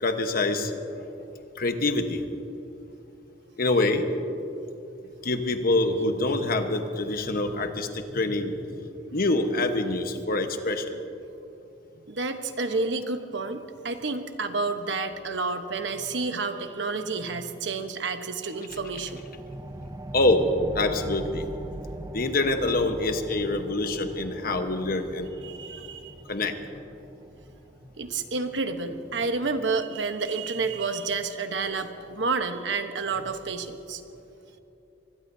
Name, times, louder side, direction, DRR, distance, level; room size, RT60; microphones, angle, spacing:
voice 1, 0.0-0.7 1.5-2.2 3.6-4.1 5.2-8.8 9.1-11.0 20.1-20.4 20.7-21.5 22.1-25.3 26.3-26.6, left 2 dB, 55° left, 6 dB, 1.1 m, -25 dB
voice 2, 12.1-19.2 25.4-26.1 28.0-34.0, right 4 dB, 75° right, 7 dB, 1.1 m, -30 dB
sound 1, 18.7-29.8, right 1 dB, 20° right, 0.5 m, -42 dB
25.0 x 20.5 x 2.7 m, 2.9 s
head